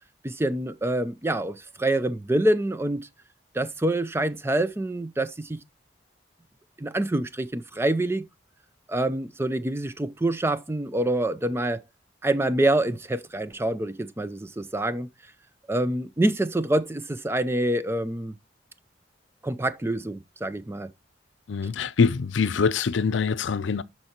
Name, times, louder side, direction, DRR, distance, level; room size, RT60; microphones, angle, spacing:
voice 1, 0.2-3.1 3.5-5.6 6.8-8.2 8.9-11.8 12.2-15.1 15.7-18.3 19.4-20.9, right 1 dB, 15° right, 0.4 m, -26 dB
voice 2, 21.5-23.8, left 5 dB, 80° left, 0.5 m, -24 dB
12.0 x 4.4 x 2.8 m
head